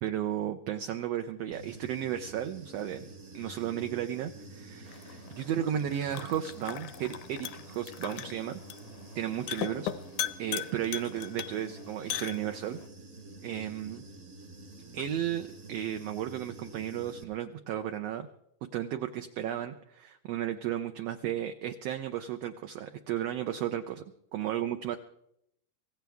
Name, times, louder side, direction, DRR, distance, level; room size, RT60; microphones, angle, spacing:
voice 1, 0.0-3.1 3.3-8.6 9.1-9.9 10.4-12.8 13.4-14.1 14.9-18.3 18.7-24.0 24.3-25.0, right 10 dB, 75° right, 7 dB, 1.5 m, -34 dB
Human voice / Buzz, 1.5-17.2, right 2 dB, 45° right, 1.0 m, -48 dB
sound 1, 4.9-12.9, left 11 dB, 75° left, 2.1 m, -39 dB
25.0 x 16.5 x 3.5 m, 0.76 s
omnidirectional pair, 3.7 m